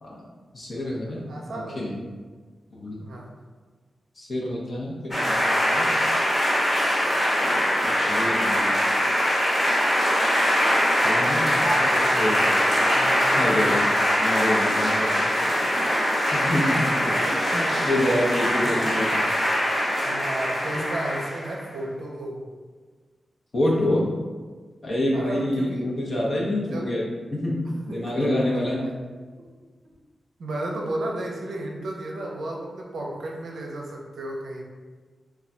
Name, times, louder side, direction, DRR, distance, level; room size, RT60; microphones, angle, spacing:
voice 1, 0.5-1.2 1.5-2.0 2.7-3.0 4.2-5.9 7.8-8.8 10.9-12.6 12.9-13.9 14.2-15.3 16.3-17.2 17.8-19.2 20.7-20.8 23.5-24.1 24.8-27.6 27.9-28.9, left 1 dB, 50° left, -3 dB, 0.7 m, -27 dB
voice 2, 1.3-1.9 3.0-3.3 15.6-16.4 17.0-18.1 18.6-19.1 20.0-22.4 25.1-25.8 26.7-27.2 28.0-28.6 30.4-34.6, right 1 dB, 90° right, -1 dB, 0.5 m, -34 dB
sound 1, 5.1-21.6, equal, 25° left, 1.0 m, -22 dB
2.2 x 2.2 x 3.7 m, 1.4 s
wide cardioid pair, 100°, 0 cm